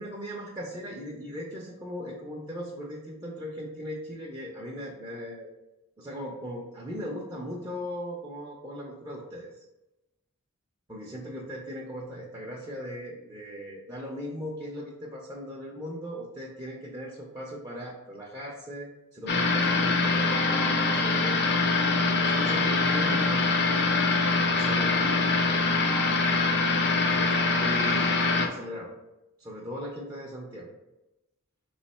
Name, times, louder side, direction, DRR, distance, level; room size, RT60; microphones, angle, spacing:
voice 1, 0.0-5.5 6.0-9.6 10.9-21.4 22.0-23.7 24.4-25.6 27.0-28.9 29.4-30.7, equal, 20° right, -4 dB, 0.6 m, -38 dB
sound 1, 19.3-28.5, left 3 dB, 50° left, 0.5 m, -24 dB
3.6 x 3.1 x 4.2 m, 0.98 s
head